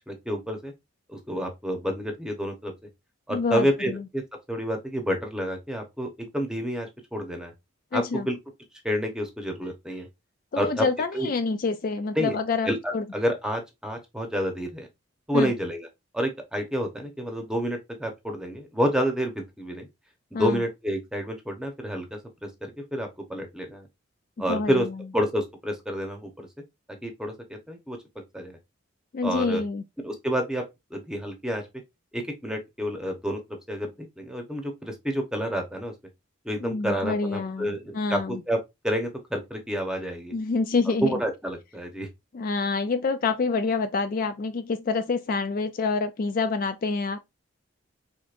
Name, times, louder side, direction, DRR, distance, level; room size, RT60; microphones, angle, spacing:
voice 1, 0.1-0.7 1.1-2.7 3.3-4.2 4.5-7.5 7.9-8.4 8.8-10.1 10.6-10.9 11.1-11.3 12.2-12.4 12.7-14.9 15.3-15.9 16.1-19.9 20.4-23.9 24.4-24.9 25.1-26.5 26.9-28.0 28.3-28.6 29.2-29.6 30.0-30.6 30.9-31.6 32.1-33.4 33.7-33.9 34.2-35.9 36.4-38.6 38.8-40.3 40.9-42.1, equal, 5° right, 0.9 m, -29 dB
voice 2, 3.3-4.0 7.9-8.3 10.5-13.0 15.3-15.5 20.3-20.6 24.5-24.9 29.1-29.8 36.6-38.4 40.3-41.2 42.3-47.2, left 4 dB, 40° left, 0.3 m, -27 dB
5.0 x 3.7 x 2.5 m
head